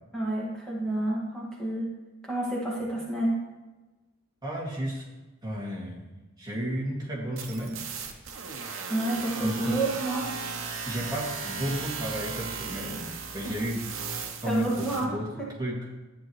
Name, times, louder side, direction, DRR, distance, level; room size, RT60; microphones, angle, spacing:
voice 1, 0.1-1.9 2.2-3.4 8.9-10.3 13.4-13.7 14.5-15.5, right 1 dB, 5° left, -6 dB, 1.8 m, -29 dB
voice 2, 4.4-5.0 5.4-6.1 6.4-7.8 9.4-9.8 10.9-13.8 14.4-15.3 15.6-15.8, equal, 20° right, -5 dB, 2.2 m, -32 dB
sound 1, 7.4-15.1, right 5 dB, 60° right, 1.0 m, -36 dB
11.5 x 9.1 x 3.1 m, 1.2 s
head